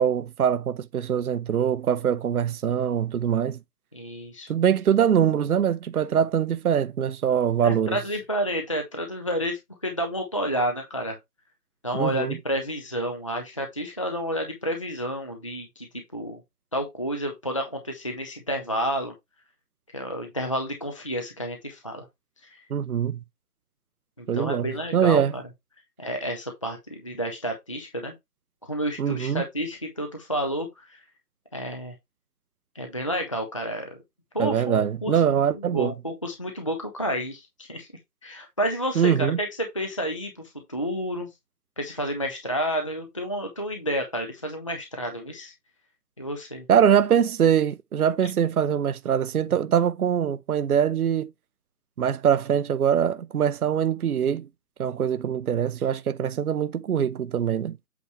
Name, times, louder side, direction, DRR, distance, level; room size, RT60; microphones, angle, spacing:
voice 1, 0.0-3.6 4.5-8.0 11.9-12.4 22.7-23.2 24.3-25.3 29.0-29.4 34.4-35.9 39.0-39.4 46.7-51.3 52.0-54.5 54.8-57.8, right 8 dB, 65° right, 0.7 m, -23 dB
voice 2, 3.9-4.5 7.6-11.2 11.8-15.9 16.1-16.4 16.7-19.1 19.9-22.1 24.2-25.4 26.0-28.1 28.7-31.0 31.5-31.9 32.7-34.0 34.3-37.9 38.2-41.3 41.8-45.5 46.2-46.7, equal, 20° left, 0.5 m, -30 dB
8.2 x 3.0 x 4.6 m
figure-of-eight pair, 150°, 49 cm